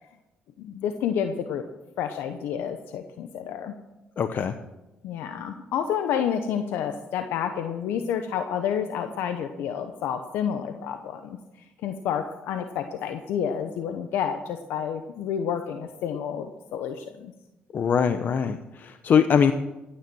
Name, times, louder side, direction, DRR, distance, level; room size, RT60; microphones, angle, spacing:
voice 1, 0.6-1.6 2.0-3.7 5.0-11.4 11.8-17.3, left 8 dB, 80° left, 7 dB, 0.9 m, -29 dB
voice 2, 4.2-4.5 17.7-19.5, left 7 dB, 55° left, 10 dB, 0.8 m, -22 dB
15.0 x 10.0 x 6.2 m, 0.99 s
supercardioid pair, 75°, 4 cm